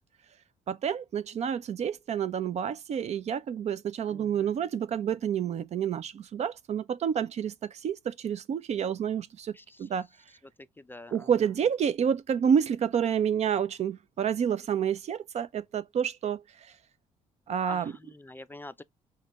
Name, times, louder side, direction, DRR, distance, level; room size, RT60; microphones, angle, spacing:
voice 1, 0.7-9.5 9.8-10.1 11.1-16.4 17.5-17.9, right 8 dB, 45° right, 0.4 m, -29 dB
voice 2, 4.1-4.5 9.5-9.9 10.6-11.3 17.6-18.8, left 2 dB, 15° left, 0.4 m, -46 dB
5.7 x 2.1 x 3.2 m
hypercardioid pair, 45°, 16 cm